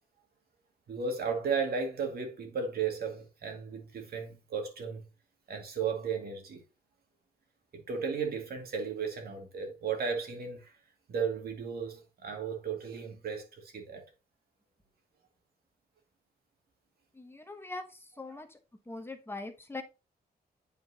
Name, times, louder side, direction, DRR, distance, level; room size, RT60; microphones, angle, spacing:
voice 1, 0.9-5.1 5.5-6.6 7.7-10.7 11.1-14.0, right 5 dB, 70° right, 2.0 m, -35 dB
voice 2, 17.1-18.6 18.9-19.8, left 2 dB, 15° left, 1.0 m, -42 dB
8.5 x 4.6 x 2.7 m
cardioid pair, 95°, 17 cm